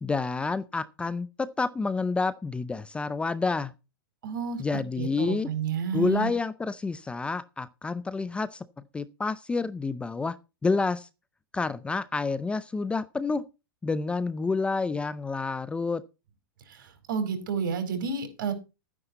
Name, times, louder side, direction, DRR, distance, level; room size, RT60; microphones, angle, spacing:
voice 1, 0.0-3.7 4.6-5.5 5.9-8.7 8.9-10.4 10.6-11.1 11.5-13.4 13.8-16.0, left 4 dB, 10° left, 0.5 m, -29 dB
voice 2, 4.2-6.3 16.7-18.5, right 6 dB, 65° right, 4.6 m, -31 dB
12.5 x 9.7 x 4.0 m
hypercardioid pair, 135°, 12 cm